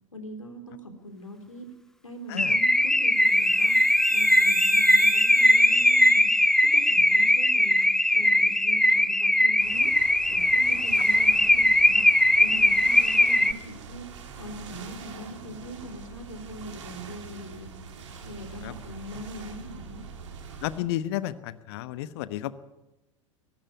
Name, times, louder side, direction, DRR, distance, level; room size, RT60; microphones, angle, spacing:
voice 1, 0.1-1.7 2.0-3.8 4.1-6.3 6.6-7.8 8.1-9.9 10.3-12.1 12.4-14.1 14.4-17.7 18.2-20.0, equal, 85° left, 5 dB, 3.4 m, -41 dB
Car / Alarm, 2.4-13.5, left 1 dB, 5° left, 0.8 m, -20 dB
sound 1, 3.2-7.7, right 6 dB, 20° right, 1.8 m, -38 dB
sound 2, 9.6-20.8, right 5 dB, 65° right, 3.4 m, -43 dB
voice 2, 20.6-22.5, left 13 dB, 55° left, 15 dB, 1.1 m, -32 dB
22.0 x 12.0 x 9.6 m, 1.0 s
figure-of-eight pair, 85°, 16 cm